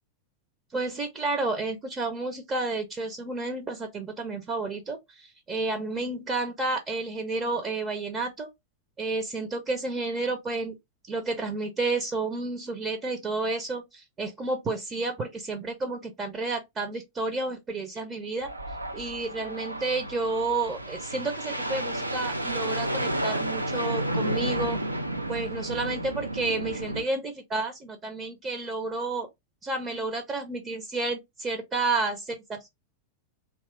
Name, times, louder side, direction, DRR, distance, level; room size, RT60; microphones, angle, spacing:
voice 1, 0.7-8.5 9.0-10.8 11.1-18.5 18.9-24.8 25.3-29.3 29.6-32.7, right 3 dB, 25° right, 0.6 m, -31 dB
sound 1, 18.4-27.0, right 1 dB, 85° right, 0.4 m, -31 dB
3.0 x 2.3 x 2.9 m
figure-of-eight pair, 90°, 0 cm